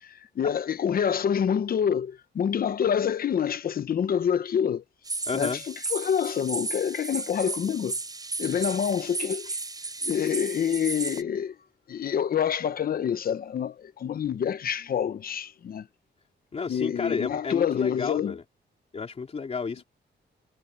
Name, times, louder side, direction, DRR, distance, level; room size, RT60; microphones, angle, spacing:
voice 1, 0.4-4.8 5.3-5.6 5.9-8.0 8.4-9.6 10.0-11.6 11.9-15.9 16.7-18.4, left 8 dB, 50° left, 0.9 m, -27 dB
sound 1, 5.0-11.2, right 3 dB, 20° right, 7.6 m, -34 dB
voice 2, 5.3-5.6 16.5-18.4 18.9-19.9, left 5 dB, 35° left, 3.7 m, -31 dB
wide cardioid pair, 155°, 20 cm